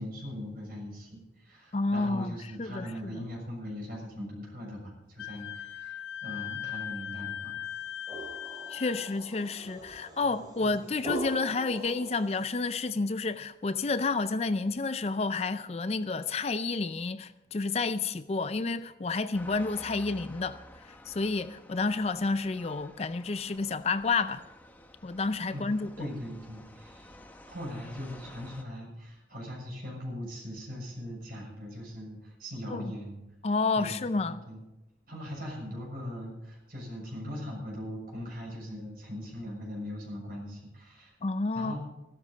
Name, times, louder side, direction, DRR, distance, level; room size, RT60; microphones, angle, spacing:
voice 1, 0.0-7.6 10.2-10.8 25.5-27.1 27.4-33.2 33.8-34.6 35.1-41.1 41.5-41.8, equal, 55° right, 6.7 m, -40 dB
voice 2, 1.7-2.9 8.7-20.6 21.1-24.4 25.0-25.9 32.7-32.9 33.4-34.4 41.2-41.7, left 3 dB, 35° left, 0.4 m, -30 dB
Wind instrument woodwind instrument, 5.2-9.1, left 11 dB, 85° left, 0.7 m, -39 dB
sound 1, 7.7-12.7, right 1 dB, 25° right, 4.4 m, -42 dB
sound 2, 19.3-28.6, left 1 dB, 10° left, 0.9 m, -51 dB
15.0 x 12.5 x 5.2 m
head